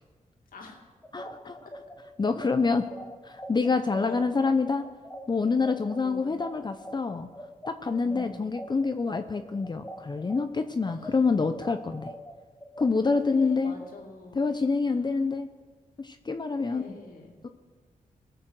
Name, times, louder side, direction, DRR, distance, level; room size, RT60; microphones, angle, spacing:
sound 1, 1.0-10.4 10.8-13.9, equal, 15° left, 1.3 m, -43 dB
voice 1, 1.1-1.5 2.2-2.8 3.2-4.9 5.3-7.3 7.7-12.1 12.8-13.8 14.3-15.5 16.0-17.0 17.4-17.5, left 4 dB, 30° left, 8 dB, 0.6 m, -27 dB
voice 2, 4.0-4.3 6.0-6.4 8.0-8.5 10.9-11.2 13.2-14.4 16.6-17.4, left 4 dB, 85° left, 1 dB, 2.3 m, -43 dB
19.0 x 6.7 x 6.4 m, 1.4 s
cardioid pair, 75°, 14 cm